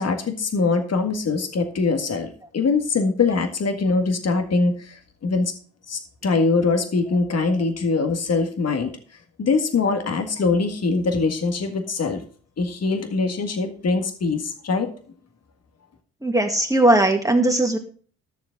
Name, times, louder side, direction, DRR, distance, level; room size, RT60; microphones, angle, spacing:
voice 1, 0.0-5.0 5.2-5.5 5.9-8.9 9.4-12.2 12.6-14.9, left 4 dB, 50° left, 6 dB, 1.8 m, -23 dB
voice 2, 16.2-17.8, right 1 dB, 10° right, 3 dB, 1.9 m, -18 dB
12.5 x 6.8 x 3.9 m, 0.43 s
hypercardioid pair, 45°, 33 cm